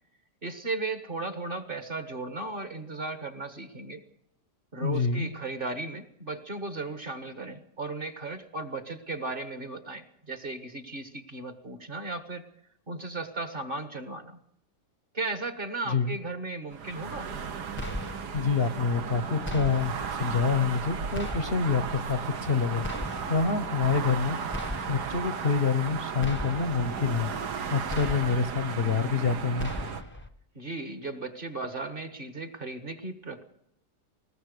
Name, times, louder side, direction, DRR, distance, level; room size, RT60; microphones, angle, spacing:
voice 1, 0.4-4.0 4.7-12.4 12.9-14.4 15.1-17.3 30.5-33.4, right 3 dB, 35° right, 9 dB, 1.6 m, -36 dB
voice 2, 4.8-5.3 15.9-16.2 18.3-22.9 23.3-24.4 24.9-27.3 27.7-29.7, left 5 dB, 40° left, 10 dB, 1.0 m, -27 dB
sound 1, 16.7-30.0, right 6 dB, 70° right, 1.8 m, -35 dB
sound 2, 17.8-18.5 19.4-20.1 21.1-21.8 22.8-23.5 24.5-25.2 26.2-26.9 27.9-28.6 29.6-30.3, left 1 dB, 10° left, 1.0 m, -37 dB
21.0 x 20.0 x 6.7 m, 0.74 s
omnidirectional pair, 1.9 m